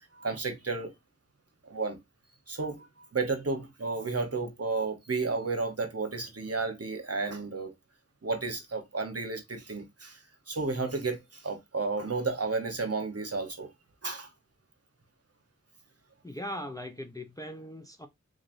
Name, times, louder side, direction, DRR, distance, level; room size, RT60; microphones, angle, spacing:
voice 1, 0.2-0.9 1.6-2.0 2.5-7.7 8.2-10.2 10.5-13.7 14.0-14.3, right 3 dB, 55° right, 1.1 m, -32 dB
voice 2, 16.2-18.1, equal, 10° left, 0.5 m, -39 dB
3.8 x 3.2 x 2.6 m
wide cardioid pair, 60°, 30 cm